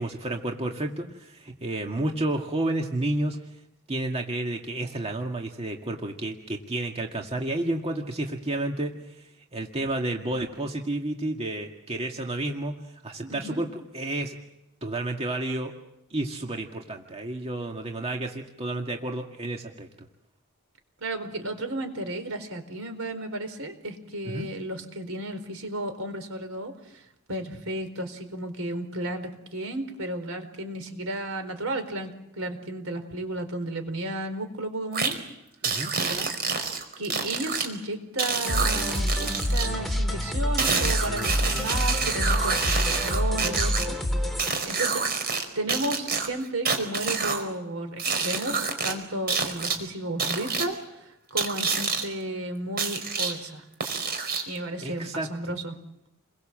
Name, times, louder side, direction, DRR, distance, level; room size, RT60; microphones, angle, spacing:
voice 1, 0.0-3.4 3.9-12.7 13.0-14.4 14.8-15.7 16.1-19.9 24.2-24.5 35.6-35.9 54.8-55.5, right 1 dB, 30° right, 2 dB, 2.0 m, -31 dB
voice 2, 13.2-13.6 21.0-27.0 27.3-35.1 36.0-36.3 37.0-44.0 44.3-45.0 45.5-53.6 54.5-55.8, right 1 dB, 70° right, 8 dB, 4.5 m, -33 dB
sound 1, 34.9-35.1 35.6-37.7 38.2-39.7 40.6-43.8 44.4-45.4 45.7-47.4 48.0-48.9 49.3-49.8 50.2-50.7 51.4-52.0 52.8-53.3 53.8-54.6, right 5 dB, 45° right, 4.7 m, -27 dB
sound 2, 38.4-44.5, left 1 dB, ahead, 3.0 m, -27 dB
29.5 x 22.5 x 7.7 m, 0.87 s
head